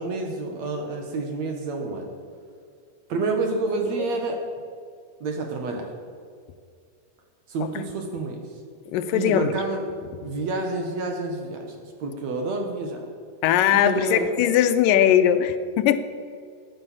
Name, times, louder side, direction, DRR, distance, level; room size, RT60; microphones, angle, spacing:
voice 1, 0.0-2.1 3.1-4.4 5.2-5.9 7.5-8.4 9.1-9.8 10.2-13.1 13.7-14.3, right 3 dB, 60° right, 3 dB, 2.3 m, -28 dB
voice 2, 8.9-9.5 13.4-16.0, left 10 dB, 80° left, 10 dB, 2.2 m, -20 dB
14.5 x 9.9 x 7.2 m, 2.2 s
omnidirectional pair, 4.0 m